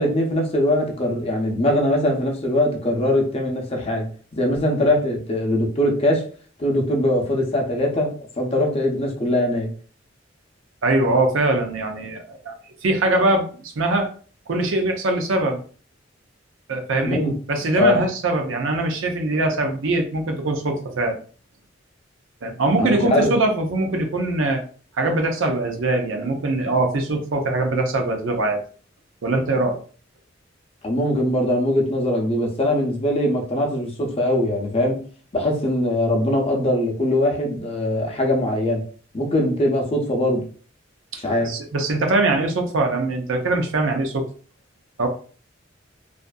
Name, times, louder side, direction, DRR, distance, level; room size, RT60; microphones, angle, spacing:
voice 1, 0.0-6.3 6.6-9.7 17.0-17.3 17.8-18.0 22.8-23.3 30.8-35.0 35.3-38.8 39.1-40.5 41.2-41.6, left 1 dB, 30° left, 0.6 m, -21 dB
voice 2, 10.8-12.6 12.8-14.1 14.5-15.6 16.7-17.2 17.5-21.2 22.4-24.6 25.0-28.6 29.2-29.8 41.1-44.3 45.0-45.1, right 2 dB, 75° right, 0.6 m, -22 dB
2.5 x 2.4 x 2.3 m
head